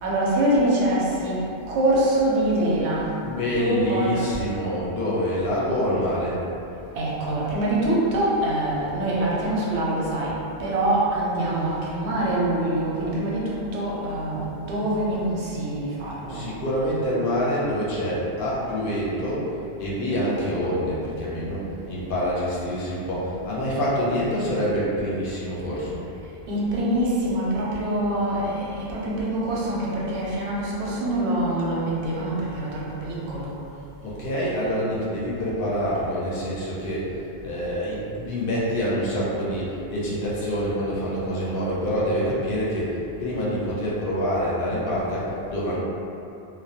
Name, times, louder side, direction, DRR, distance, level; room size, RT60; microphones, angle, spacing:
voice 1, 0.0-3.2 3.6-4.3 6.9-16.5 26.2-33.6, right 1 dB, 85° right, -6 dB, 0.9 m, -25 dB
voice 2, 3.2-6.4 16.3-26.0 34.0-45.8, equal, 60° left, -7 dB, 0.8 m, -26 dB
2.2 x 2.1 x 2.7 m, 2.7 s
omnidirectional pair, 1.1 m